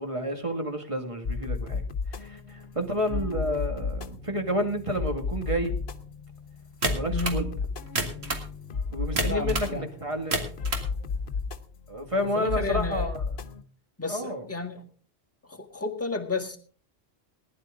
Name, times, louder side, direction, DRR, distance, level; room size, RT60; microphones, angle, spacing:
voice 1, 0.0-5.8 6.9-7.5 8.9-10.4 11.9-13.2 14.1-14.5, equal, 30° right, 5 dB, 2.0 m, -30 dB
sound 1, 1.2-13.6, left 4 dB, 65° left, 1.2 m, -34 dB
sound 2, 6.8-7.4 7.9-8.5 9.2-9.7 10.1-10.9, right 2 dB, 70° right, 2.3 m, -29 dB
voice 2, 7.1-7.5 9.3-9.8 12.3-13.1 14.0-14.9 15.5-16.6, left 3 dB, 15° left, 0 dB, 1.8 m, -32 dB
19.5 x 11.0 x 3.7 m, 0.41 s
omnidirectional pair, 1.1 m